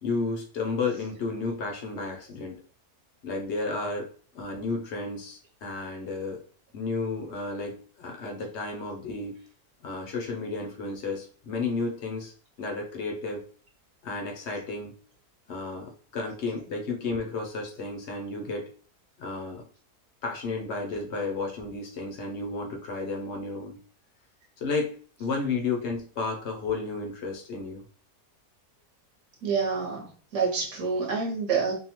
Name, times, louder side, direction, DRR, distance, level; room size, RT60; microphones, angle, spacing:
voice 1, 0.0-2.6 3.2-6.4 6.7-9.4 9.8-12.3 12.6-13.4 14.0-14.9 15.5-18.7 19.2-19.6 20.2-23.8 24.6-27.8, left 3 dB, 60° left, 1 dB, 0.7 m, -32 dB
voice 2, 29.4-31.7, right 5 dB, 60° right, -1 dB, 1.1 m, -27 dB
2.7 x 2.1 x 2.9 m, 0.42 s
omnidirectional pair, 1.6 m